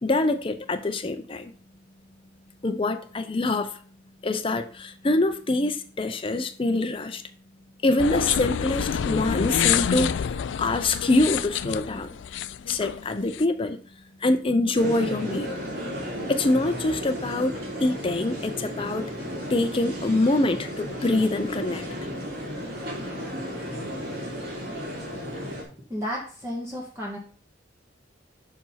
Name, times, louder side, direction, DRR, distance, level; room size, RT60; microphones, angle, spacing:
voice 1, 0.0-1.5 2.6-3.8 4.2-7.2 7.8-12.1 12.7-13.8 14.2-15.5 16.3-19.0 19.5-21.8, left 2 dB, 30° left, 0.6 m, -25 dB
sound 1, 8.0-13.4, left 8 dB, 70° left, 0.4 m, -27 dB
sound 2, 14.7-25.6, equal, 55° right, 2.4 m, -34 dB
voice 2, 25.9-27.2, equal, 15° right, 1.3 m, -32 dB
5.3 x 4.8 x 5.7 m
head